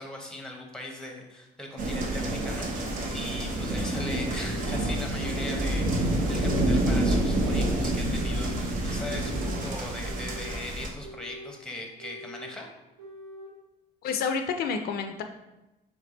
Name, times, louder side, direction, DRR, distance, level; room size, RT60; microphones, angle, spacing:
voice 1, 0.0-12.7, left 1 dB, 5° left, 2 dB, 0.8 m, -40 dB
sound 1, 1.8-10.9, right 1 dB, 55° right, 0.7 m, -28 dB
sound 2, 3.0-3.1 4.0-4.8 5.2-5.7 6.2-6.7 7.1-7.7 8.1-8.7 9.1-9.6 10.0-10.6 11.0-11.6 12.0-12.6 13.0-13.5, equal, 90° right, 1.5 m, -44 dB
voice 2, 14.0-15.2, left 6 dB, 70° left, 6 dB, 0.4 m, -29 dB
3.3 x 3.3 x 3.9 m, 0.97 s
cardioid pair, 110°, 17 cm